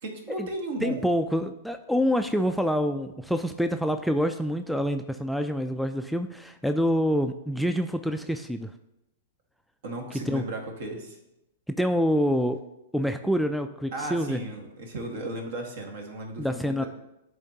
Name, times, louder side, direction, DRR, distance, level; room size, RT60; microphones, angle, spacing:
voice 1, 0.0-1.0 9.8-11.2 13.9-16.9, right 1 dB, 60° right, 2 dB, 1.5 m, -35 dB
voice 2, 0.8-8.7 10.3-10.4 11.7-12.6 12.9-14.4 16.4-16.8, equal, ahead, 6 dB, 0.3 m, -26 dB
11.0 x 3.8 x 2.8 m, 0.89 s
hypercardioid pair, 110°, 0 cm